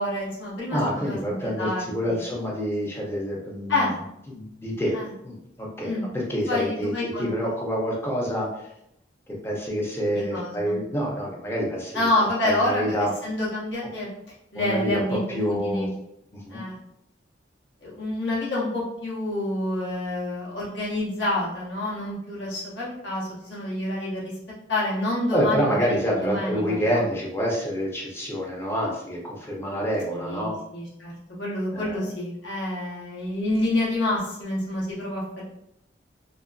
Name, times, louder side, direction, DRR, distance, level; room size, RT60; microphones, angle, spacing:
voice 1, 0.0-2.2 3.7-4.0 4.9-5.1 5.8-6.1 6.5-7.5 10.1-10.8 11.9-14.1 14.5-15.9 16.5-16.8 17.8-24.3 24.7-26.0 26.2-27.0 30.1-31.1 31.4-35.4, left 1 dB, 70° left, -6 dB, 0.8 m, -28 dB
voice 2, 0.7-3.9 4.3-5.0 5.2-8.7 9.3-12.1 12.4-13.1 14.5-15.0 15.3-15.9 16.3-16.6 25.3-30.6 31.7-32.0, equal, 15° left, -3 dB, 0.5 m, -27 dB
2.4 x 2.3 x 2.3 m, 0.79 s
head